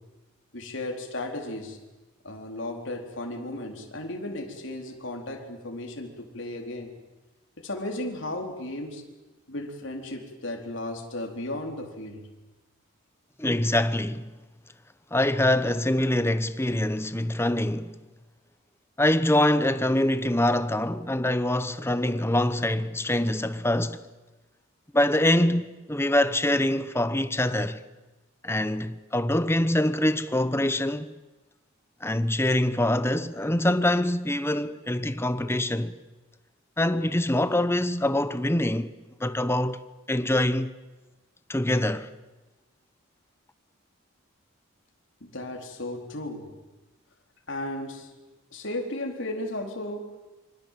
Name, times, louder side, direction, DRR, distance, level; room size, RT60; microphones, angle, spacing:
voice 1, 0.5-1.8 2.2-6.9 7.6-9.0 9.5-12.3 45.2-46.6 47.5-48.1 48.5-50.2, left 1 dB, 60° left, 4.3 m, -35 dB
voice 2, 13.4-14.2 15.1-18.0 19.0-24.1 24.9-27.8 28.4-31.1 32.0-35.9 36.8-38.9 39.2-39.8 40.1-40.7 41.5-42.1, left 1 dB, 10° left, 1.0 m, -24 dB
26.0 x 25.5 x 7.7 m
head